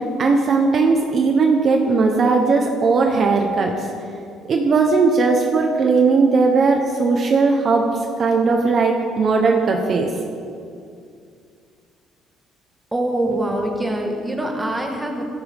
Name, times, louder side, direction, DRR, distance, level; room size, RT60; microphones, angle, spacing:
voice 1, 0.0-3.7 4.5-7.9 8.2-10.1, right 4 dB, 40° right, 2 dB, 1.1 m, -17 dB
voice 2, 12.9-15.2, right 1 dB, 10° right, 1 dB, 1.6 m, -24 dB
17.5 x 13.5 x 3.7 m, 2.3 s
cardioid pair, 150°, 0 cm